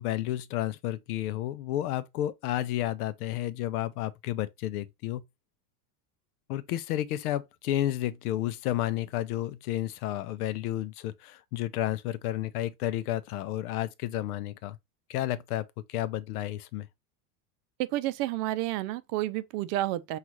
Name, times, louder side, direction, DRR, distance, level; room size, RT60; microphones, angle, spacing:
voice 1, 0.0-5.2 6.5-14.8 15.1-16.9, left 13 dB, 85° left, 0.6 m, -31 dB
voice 2, 17.8-20.2, right 15 dB, 55° right, 0.6 m, -30 dB
5.4 x 2.4 x 3.0 m
supercardioid pair, 125°, 44 cm